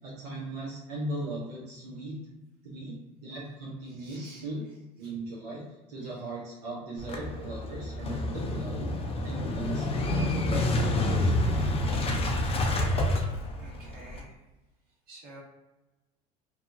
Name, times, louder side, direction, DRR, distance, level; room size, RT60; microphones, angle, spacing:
voice 1, 0.0-2.1 2.6-2.9 3.2-4.6 5.0-10.8 11.1-11.5, right 2 dB, 85° right, -6 dB, 0.8 m, -38 dB
voice 2, 4.0-4.4 13.6-14.3 15.1-15.4, right 2 dB, 50° right, -6 dB, 1.4 m, -49 dB
Motorcycle / Engine starting, 7.0-14.2, left 1 dB, 30° left, 0.5 m, -28 dB
2.8 x 2.3 x 2.6 m, 1.1 s
hypercardioid pair, 85°, 20 cm